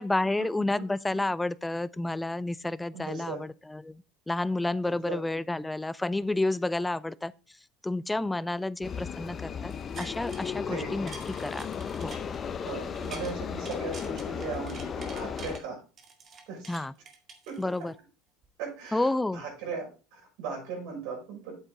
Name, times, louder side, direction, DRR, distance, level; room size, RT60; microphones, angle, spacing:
voice 1, 0.0-7.3 7.8-11.1 11.4-11.7 12.0-12.2 16.7-16.9 17.6-17.9 18.9-19.4, left 2 dB, 10° left, 0.4 m, -30 dB
voice 2, 2.9-3.4 5.0-5.2 10.7-10.9 12.6-15.8 16.5-16.8 17.5-17.9 18.6-21.6, right 4 dB, 75° right, 6.0 m, -38 dB
sound 1, 8.8-15.6, left 7 dB, 35° left, 0.9 m, -35 dB
sound 2, 9.7-10.6 10.9-13.3 13.6-15.6 16.0-18.0 18.4-18.5, right 5 dB, 40° right, 1.9 m, -47 dB
8.2 x 8.1 x 3.8 m
supercardioid pair, 90°, 0 cm